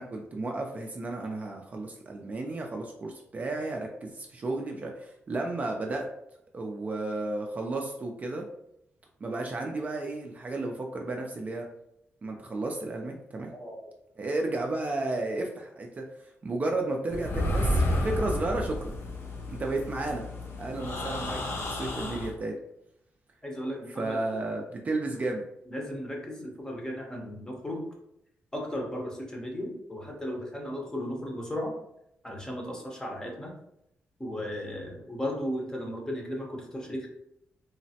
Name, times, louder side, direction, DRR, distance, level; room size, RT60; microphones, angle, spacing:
voice 1, 0.0-6.1 6.5-8.5 9.2-11.7 12.2-13.5 14.2-18.9 19.5-20.2 20.6-22.5 23.9-25.5, right 2 dB, 35° right, 2 dB, 0.3 m, -33 dB
sound 1, 17.1-22.3, left 1 dB, 60° left, 0.6 m, -31 dB
voice 2, 23.4-24.5 25.7-27.9 28.5-31.7 32.2-33.5 34.2-37.1, equal, 15° left, 0 dB, 0.7 m, -35 dB
3.1 x 2.0 x 2.7 m, 0.77 s
cardioid pair, 110°, 5 cm